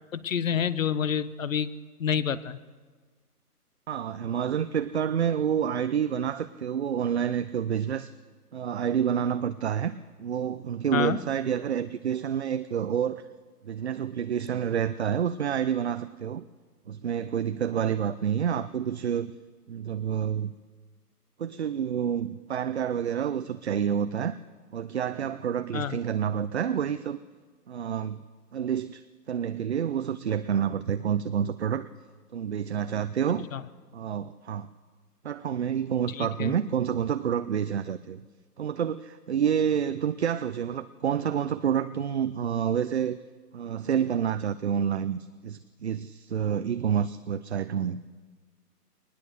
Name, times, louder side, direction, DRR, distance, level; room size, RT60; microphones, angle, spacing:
voice 1, 0.1-1.7 2.0-2.6 10.9-11.2 25.7-26.0 33.5-33.6 36.1-36.5, left 8 dB, 55° left, 17 dB, 1.0 m, -28 dB
voice 2, 3.9-8.1 8.5-13.2 13.6-16.5 16.9-19.3 19.7-20.5 21.4-24.4 24.7-27.2 27.7-28.2 28.5-29.0 29.3-31.9 32.3-33.5 33.9-34.7 35.2-38.3 38.6-43.2 43.5-48.0, right 8 dB, 45° right, 12 dB, 0.6 m, -28 dB
21.0 x 19.5 x 6.5 m, 1.4 s
hypercardioid pair, 155°, 48 cm